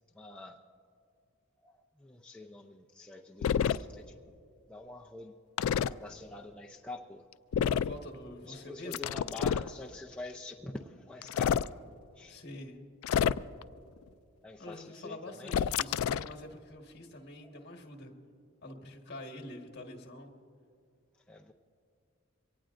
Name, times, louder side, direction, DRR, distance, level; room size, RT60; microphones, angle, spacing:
voice 1, 0.1-0.6 1.6-4.2 4.7-5.4 5.6-7.3 8.4-11.7 12.1-12.4 14.4-15.6 17.4-17.6 21.3-21.5, left 2 dB, 5° left, -1 dB, 0.5 m, -46 dB
sound 1, 3.4-3.8 5.6-5.9 7.5-8.0 8.9-9.7 11.2-11.7 13.0-13.6 15.5-16.3, left 8 dB, 80° left, 0.3 m, -28 dB
voice 2, 7.7-9.1 12.3-12.8 14.6-18.1 18.6-20.3, left 1 dB, 50° left, 3 dB, 1.6 m, -46 dB
23.5 x 18.0 x 2.5 m, 2.3 s
head